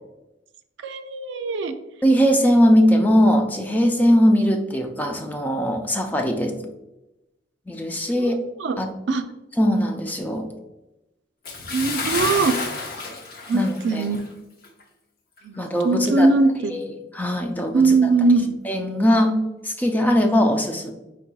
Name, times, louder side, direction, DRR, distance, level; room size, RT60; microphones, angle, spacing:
voice 1, 0.8-1.8 8.2-8.8 9.1-9.2 11.7-12.5 13.5-14.2 15.4-16.7 17.7-18.6, right 3 dB, 75° right, 9 dB, 0.4 m, -21 dB
voice 2, 2.0-6.6 7.7-8.4 8.8-8.9 9.6-10.5 13.5-14.1 15.5-16.3 16.7-16.9 17.1-18.0 18.6-20.9, equal, 10° left, 3 dB, 0.4 m, -20 dB
Bathtub (filling or washing) / Splash splatter, 11.4-14.3 14.6-14.8 15.4-15.5, left 3 dB, 55° left, 0.8 m, -30 dB
4.7 x 4.0 x 2.2 m, 0.96 s
head